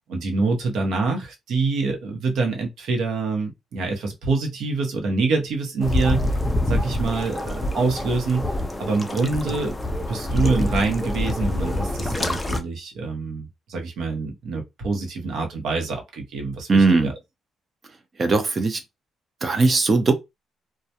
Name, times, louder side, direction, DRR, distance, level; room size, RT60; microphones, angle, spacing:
voice 1, 0.1-6.4 6.7-8.5 8.8-9.7 10.1-17.1, right 3 dB, 75° right, 0.8 m, -25 dB
sound 1, 5.8-12.6, left 1 dB, 15° left, 0.5 m, -26 dB
voice 2, 16.7-17.1 18.2-18.8 19.4-20.1, right 3 dB, 40° right, 0.6 m, -18 dB
2.2 x 2.2 x 2.8 m
cardioid pair, 90°, 0 cm